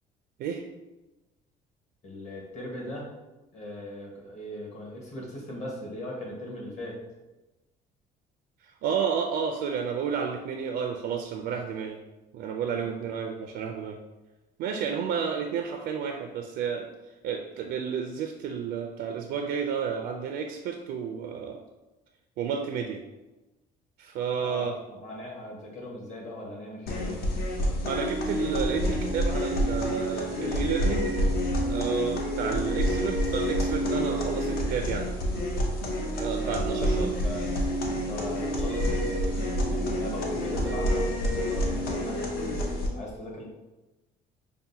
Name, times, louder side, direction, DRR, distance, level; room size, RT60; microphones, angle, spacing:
voice 1, 2.0-3.1 3.5-7.0 12.6-12.9 24.4-27.2 36.4-37.5 37.8-43.4, left 1 dB, 40° left, -2 dB, 1.3 m, -39 dB
voice 2, 8.8-12.0 12.3-14.0 14.6-16.9 17.2-21.6 22.4-23.0 24.0-24.8 27.9-31.1 31.7-35.1 36.1-37.1, right 6 dB, 75° right, 3 dB, 0.4 m, -31 dB
sound 1, 26.9-42.9, equal, 65° left, 0.7 m, -28 dB
5.7 x 2.1 x 2.7 m, 1.1 s
cardioid pair, 110°, 17 cm